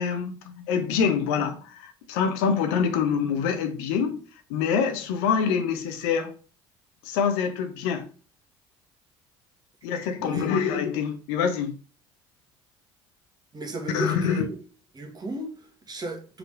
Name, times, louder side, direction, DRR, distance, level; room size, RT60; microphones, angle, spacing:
voice 1, 0.0-4.2 4.5-6.3 7.0-8.1 9.8-11.7 13.9-14.4, left 6 dB, 75° left, 1.1 m, -25 dB
voice 2, 10.2-10.6 13.5-14.5 14.9-16.4, right 1 dB, 30° right, 1.8 m, -34 dB
5.0 x 3.8 x 5.1 m
hypercardioid pair, 65°, 13 cm